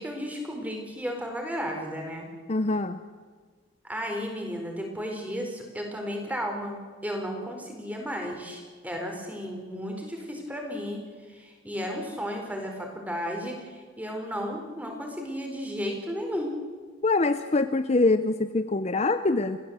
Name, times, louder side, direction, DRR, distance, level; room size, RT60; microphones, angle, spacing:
voice 1, 0.0-2.3 3.8-6.7 7.0-11.0 11.3-16.5, equal, 10° right, 2 dB, 4.3 m, -34 dB
voice 2, 2.5-3.0 17.0-19.6, left 3 dB, 35° left, 10 dB, 0.7 m, -24 dB
30.0 x 15.5 x 8.1 m, 1.6 s
head